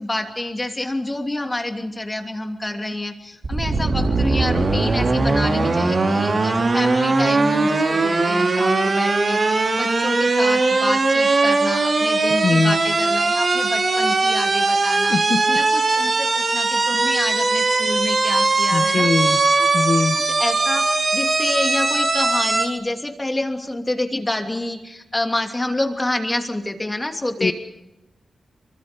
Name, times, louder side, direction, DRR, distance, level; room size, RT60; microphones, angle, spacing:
voice 1, 0.0-15.2 15.5-19.7 20.0-20.9 21.1-27.5, left 1 dB, 20° left, 4 dB, 2.9 m, -28 dB
sound 1, 3.4-22.7, right 3 dB, 45° right, 4.3 m, -20 dB
voice 2, 12.4-12.8 15.1-15.6 18.7-19.4 19.7-20.2 27.4-27.5, left 4 dB, 55° left, 12 dB, 1.3 m, -21 dB
26.5 x 24.5 x 5.3 m, 0.95 s
wide cardioid pair, 110°, 0 cm